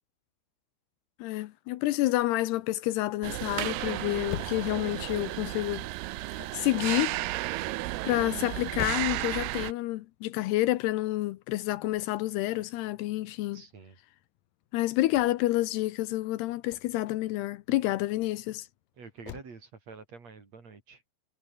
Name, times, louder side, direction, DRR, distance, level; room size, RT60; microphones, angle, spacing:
voice 1, 1.2-5.9 6.3-7.2 8.1-13.6 14.7-18.7, left 17 dB, 80° left, 2.4 m, -29 dB
sound 1, 3.2-9.7, right 18 dB, 85° right, 2.3 m, -33 dB
sound 2, 4.3-19.4, left 12 dB, 60° left, 2.5 m, -46 dB
voice 2, 13.5-14.0 19.0-21.0, right 4 dB, 35° right, 4.3 m, -47 dB
omnidirectional pair, 5.6 m